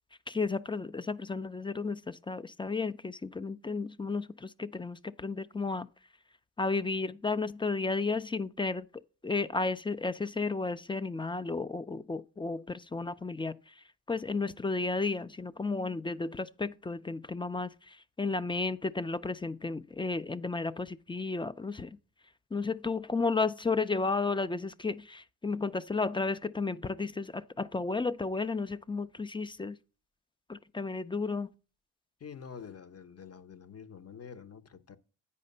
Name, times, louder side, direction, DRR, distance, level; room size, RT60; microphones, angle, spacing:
voice 1, 0.3-5.9 6.6-8.9 9.2-13.7 14.1-21.9 22.5-29.8 30.5-31.5, left 3 dB, 15° left, 0.3 m, -33 dB
voice 2, 32.2-35.0, left 6 dB, 40° left, 0.8 m, -47 dB
8.6 x 4.9 x 5.4 m
supercardioid pair, 55°, 39 cm